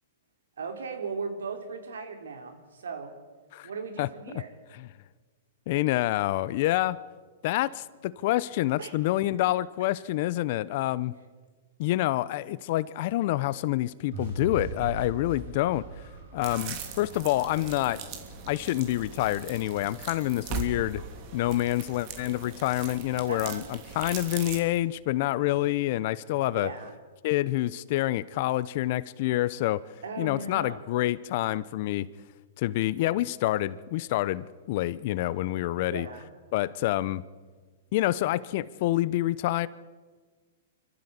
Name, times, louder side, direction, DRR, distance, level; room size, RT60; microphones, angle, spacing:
voice 1, 0.6-3.1 3.6-4.5 8.8-8.9 23.3-23.7 26.5-27.0 30.0-30.8 35.9-36.3, right 4 dB, 80° right, 5 dB, 3.7 m, -37 dB
voice 2, 5.7-7.0 7.4-11.1 11.8-15.8 16.3-18.0 18.5-21.0 21.3-26.7 27.2-29.8 30.2-32.1 32.6-36.1 36.5-37.2 37.9-39.7, left 16 dB, 50° left, 19 dB, 0.8 m, -27 dB
sound 1, 14.1-20.3, right 3 dB, 65° right, 6.0 m, -41 dB
sound 2, 16.4-24.6, right 5 dB, 45° right, 3.1 m, -40 dB
25.5 x 14.0 x 8.3 m, 1.4 s
hypercardioid pair, 125°, 0 cm